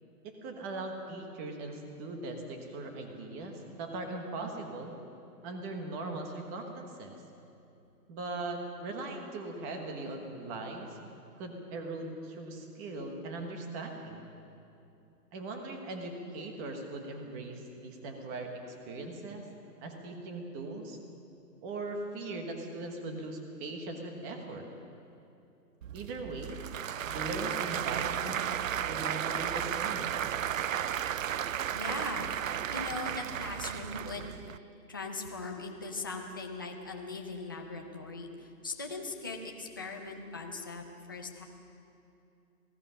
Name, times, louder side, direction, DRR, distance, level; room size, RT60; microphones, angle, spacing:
voice 1, 0.2-4.9 5.4-7.1 8.1-11.0 11.4-14.3 15.3-19.5 19.8-21.0 21.6-24.7 25.9-26.6 27.1-28.5 28.8-30.3, right 2 dB, 10° right, 4 dB, 1.2 m, -40 dB
Applause / Crowd, 25.8-34.6, right 9 dB, 55° right, 0.5 m, -34 dB
voice 2, 31.7-32.3 32.7-34.3 34.9-40.8 41.1-41.4, left 3 dB, 15° left, 1 dB, 0.6 m, -40 dB
27.0 x 18.0 x 5.7 m, 2.8 s
hypercardioid pair, 165°, 48 cm